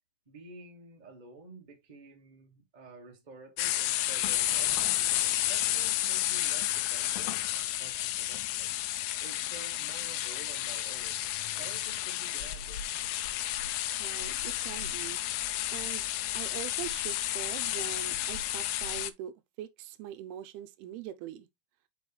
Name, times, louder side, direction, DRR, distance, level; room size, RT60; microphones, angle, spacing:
voice 1, 0.2-5.1 5.5-8.8 9.2-13.0, right 3 dB, 30° right, 0.8 m, -50 dB
sound 1, 3.6-19.1, left 14 dB, 85° left, 2.4 m, -31 dB
voice 2, 13.9-16.1 16.3-21.5, right 12 dB, 85° right, 2.7 m, -43 dB
6.3 x 4.9 x 3.3 m
omnidirectional pair, 4.5 m